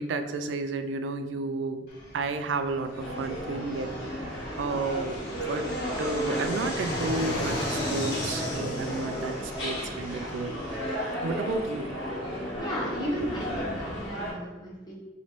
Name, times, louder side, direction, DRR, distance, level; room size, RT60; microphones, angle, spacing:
voice 1, 0.0-1.9 2.1-5.7 6.0-10.8 11.2-11.9, right 3 dB, 90° right, 8 dB, 0.4 m, -32 dB
Fixed-wing aircraft airplane, 1.9-11.1, left 1 dB, 60° left, 1.4 m, -37 dB
sound 1, 3.0-14.3, equal, 80° left, 1.3 m, -34 dB
voice 2, 12.6-14.9, equal, 25° left, -3 dB, 0.9 m, -34 dB
4.2 x 3.0 x 2.9 m, 1.2 s
head